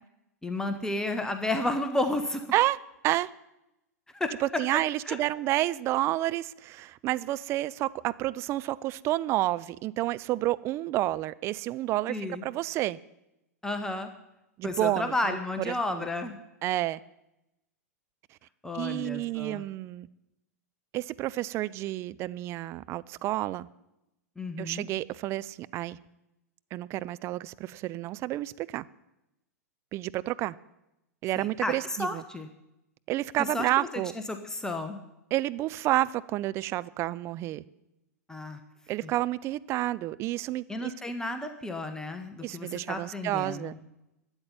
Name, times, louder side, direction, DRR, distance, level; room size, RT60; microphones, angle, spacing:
voice 1, 0.4-2.5 4.1-4.3 5.1-5.2 12.1-12.4 13.6-14.1 14.6-16.4 18.6-19.6 24.4-24.9 31.4-32.5 33.4-34.0 34.3-35.0 38.3-38.6 39.0-39.1 40.7-43.8, left 2 dB, 5° left, 1.1 m, -32 dB
voice 2, 4.4-13.0 14.6-15.4 15.7-16.1 16.6-17.0 18.7-20.1 20.9-23.7 24.6-26.0 26.7-28.9 29.9-30.6 31.2-32.2 33.1-34.1 35.3-37.6 38.9-40.9 42.4-43.7, right 15 dB, 30° right, 0.5 m, -30 dB
12.5 x 8.8 x 9.6 m
figure-of-eight pair, 95°, 9 cm